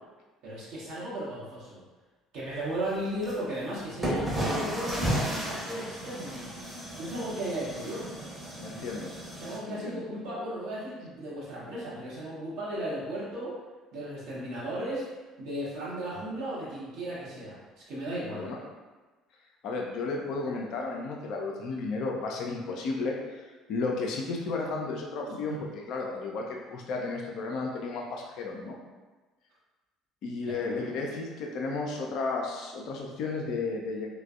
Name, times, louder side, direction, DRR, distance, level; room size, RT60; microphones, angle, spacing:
voice 1, 0.4-1.8 2.3-6.5 7.0-8.1 9.4-13.5 13.9-15.1 15.4-18.5 25.5-25.6 30.6-30.9, right 1 dB, 60° right, -8 dB, 0.8 m, -35 dB
sound 1, 3.2-3.3 4.0-9.6, right 1 dB, 10° right, 0.8 m, -33 dB
voice 2, 8.6-9.1 9.6-10.1 18.3-18.6 19.6-23.4 23.7-28.8 30.2-34.1, left 3 dB, 55° left, 0 dB, 0.3 m, -33 dB
3.2 x 2.1 x 2.4 m, 1.2 s
figure-of-eight pair, 55°, 0 cm